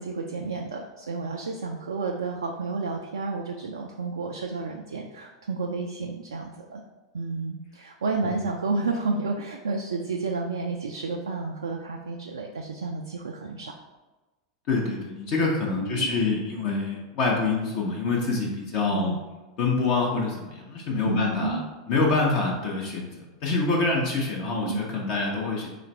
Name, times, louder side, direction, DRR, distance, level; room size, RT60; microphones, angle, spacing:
voice 1, 0.0-6.8 7.1-13.7 15.8-16.1 18.9-19.2 21.0-21.6 24.6-24.8, right 4 dB, 75° right, 1 dB, 0.3 m, -31 dB
voice 2, 14.7-19.2 19.6-21.6 21.9-25.7, left 3 dB, 50° left, -2 dB, 0.7 m, -26 dB
3.2 x 2.4 x 4.4 m, 1.2 s
figure-of-eight pair, 85°, 2 cm